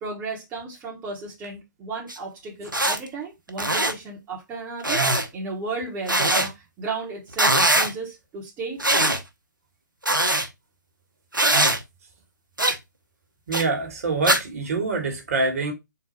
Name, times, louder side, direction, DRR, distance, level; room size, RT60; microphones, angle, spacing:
voice 1, 0.0-9.2, right 3 dB, 15° right, 1.0 m, -34 dB
sound 1, 2.1-2.2 2.7-3.0 3.5-3.9 4.8-5.2 6.1-6.5 7.3-7.9 8.8-9.2 10.0-10.5 11.3-11.8 12.6-12.8 13.5-13.6 14.2-14.4, right 1 dB, 90° right, 0.8 m, -21 dB
voice 2, 13.5-15.7, right 3 dB, 50° right, 1.3 m, -25 dB
3.9 x 2.3 x 4.1 m
figure-of-eight pair, 130°, 10 cm